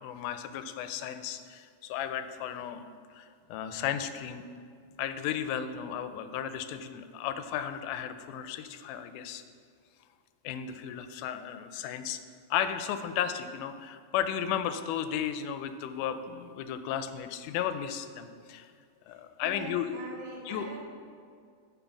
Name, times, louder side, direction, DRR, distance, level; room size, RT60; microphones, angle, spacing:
voice 1, 0.0-2.8 3.1-4.4 5.0-9.4 10.4-12.2 12.5-18.7 19.1-20.0 20.5-20.7, left 9 dB, 85° left, 10 dB, 2.1 m, -34 dB
voice 2, 19.4-20.8, right 3 dB, 45° right, -4 dB, 2.1 m, -42 dB
10.0 x 4.0 x 7.0 m, 2.2 s
omnidirectional pair, 3.6 m